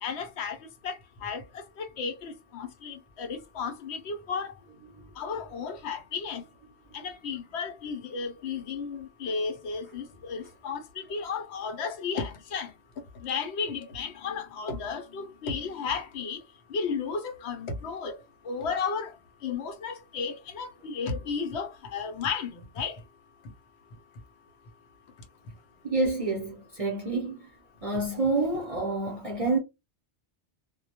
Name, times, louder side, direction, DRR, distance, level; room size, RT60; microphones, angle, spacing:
voice 1, 0.0-0.6 0.8-1.4 1.8-4.5 5.2-6.4 6.9-12.7 13.2-16.4 16.7-18.2 18.4-19.1 19.4-23.0, left 5 dB, 75° left, 0.9 m, -33 dB
voice 2, 25.8-27.4 27.8-29.6, right 3 dB, 40° right, 0.6 m, -28 dB
2.1 x 2.1 x 2.8 m
omnidirectional pair, 1.2 m